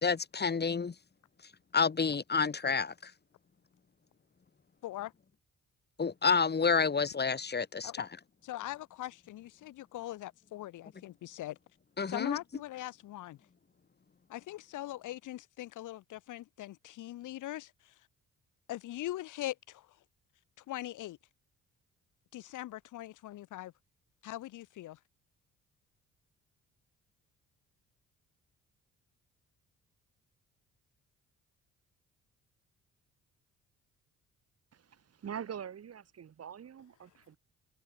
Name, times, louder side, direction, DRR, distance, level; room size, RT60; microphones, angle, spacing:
voice 1, 0.0-0.9 1.7-3.1 6.0-8.1 12.0-12.4, left 5 dB, 35° left, 3.3 m, -29 dB
voice 2, 8.4-11.6 12.1-13.4 14.3-18.0 18.7-20.0 20.6-21.2 22.3-23.7 24.2-25.0, left 15 dB, 85° left, 2.4 m, -41 dB
voice 3, 34.7-37.4, right 8 dB, 55° right, 4.6 m, -44 dB
cardioid pair, 90°, 30 cm